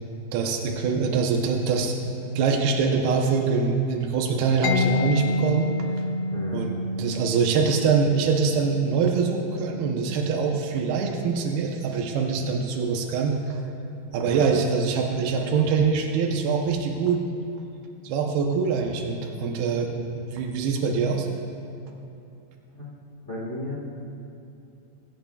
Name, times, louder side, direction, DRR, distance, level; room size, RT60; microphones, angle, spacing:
voice 1, 0.3-5.7 6.5-13.6 14.1-17.2 18.0-21.3, right 5 dB, 90° right, 1 dB, 2.9 m, -24 dB
Mallet percussion, 4.6-12.2, left 2 dB, 85° left, 2.5 m, -31 dB
voice 2, 6.3-6.7 14.2-14.5 22.7-22.9 23.2-23.8, left 2 dB, 45° left, -5 dB, 0.8 m, -35 dB
22.5 x 16.0 x 2.4 m, 2.7 s
omnidirectional pair, 4.3 m